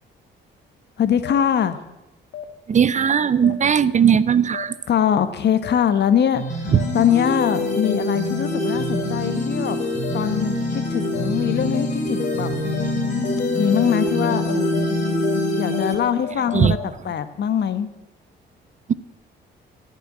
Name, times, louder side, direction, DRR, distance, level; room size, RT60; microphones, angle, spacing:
voice 1, 1.0-1.8 4.9-9.8 10.1-12.5 13.6-14.8 15.6-17.9, left 8 dB, 60° left, 12 dB, 1.1 m, -22 dB
sound 1, 1.2-1.3 2.3-2.4 3.4-3.5 4.5-4.6 5.6-5.7 6.7-6.8 7.8-7.9 8.9-9.0 10.0-10.1 11.1-11.2 11.7-11.8 12.2-12.3 12.7-12.8 13.2-13.3 13.7-13.8 14.2-14.3 14.7-14.8 15.2-15.3 15.7-16.8, left 11 dB, 80° left, 1.6 m, -33 dB
voice 2, 2.7-4.7 6.7-6.8 16.5-16.8, right 7 dB, 35° right, 18 dB, 0.6 m, -17 dB
sound 2, 6.3-15.9, left 1 dB, 40° left, 3.3 m, -24 dB
14.5 x 6.8 x 9.3 m, 0.97 s
cardioid pair, 90°, 20 cm